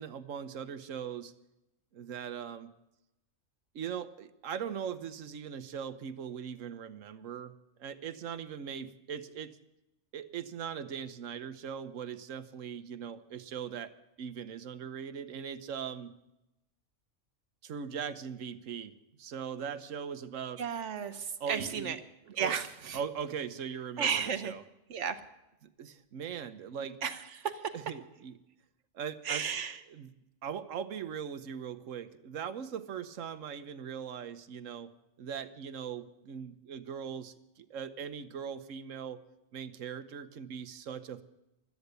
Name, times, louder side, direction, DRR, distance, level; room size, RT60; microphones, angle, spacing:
voice 1, 0.0-1.3 1.9-2.7 3.7-7.5 7.8-9.6 10.1-13.9 14.2-16.1 17.6-18.9 19.2-20.6 21.4-22.0 22.4-22.6 22.9-24.6 25.8-27.0 27.7-28.3 28.9-29.6 29.9-30.1 30.4-34.9 35.2-39.2 39.5-41.2, right 7 dB, 90° right, 12 dB, 1.3 m, -40 dB
voice 2, 20.6-22.0 22.3-23.0 24.0-24.5 24.9-25.2 27.0-27.7 29.2-29.8, right 7 dB, 70° right, 10 dB, 1.3 m, -33 dB
16.5 x 12.5 x 6.8 m, 0.91 s
omnidirectional pair, 1.3 m